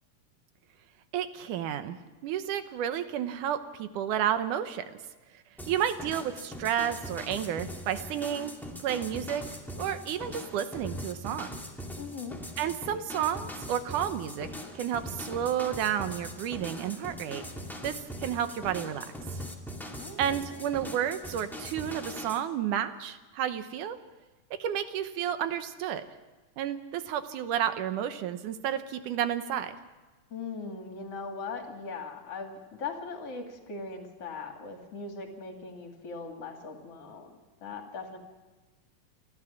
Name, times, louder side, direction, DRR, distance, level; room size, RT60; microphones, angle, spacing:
voice 1, 1.1-2.0 2.2-4.9 5.7-9.4 9.8-11.5 12.6-14.5 14.8-17.4 17.8-17.9 18.2-19.1 19.3-19.4 20.2-24.0 24.6-26.0 26.6-29.8, right 9 dB, 75° right, 10 dB, 2.4 m, -31 dB
sound 1, 5.6-22.4, equal, ahead, 1.3 m, -41 dB
voice 2, 12.0-12.4 20.0-20.2 20.6-20.7 30.3-38.2, left 4 dB, 50° left, 3 dB, 3.2 m, -40 dB
28.5 x 13.0 x 7.3 m, 1.2 s
omnidirectional pair, 3.8 m